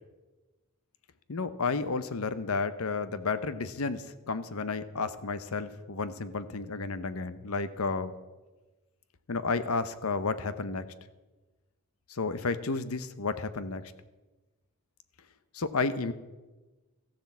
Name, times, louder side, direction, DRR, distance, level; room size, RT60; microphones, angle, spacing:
voice 1, 1.3-8.1 9.3-10.8 12.1-13.8 15.5-16.1, left 4 dB, 70° left, 13 dB, 0.8 m, -32 dB
14.0 x 7.5 x 7.1 m, 1.2 s
head